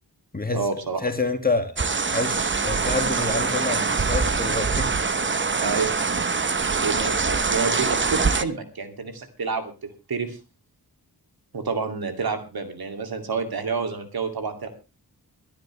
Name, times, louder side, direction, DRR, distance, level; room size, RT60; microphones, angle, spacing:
voice 1, 0.5-1.0 5.6-5.9 6.8-9.7 10.1-10.4 11.5-14.7, right 4 dB, 75° right, 2.6 m, -28 dB
voice 2, 1.0-1.8 2.1-5.0, left 3 dB, 25° left, 2.0 m, -27 dB
sound 1, 1.8-8.4, right 4 dB, 30° right, 0.8 m, -24 dB
23.0 x 10.0 x 3.2 m
wide cardioid pair, 95°, 37 cm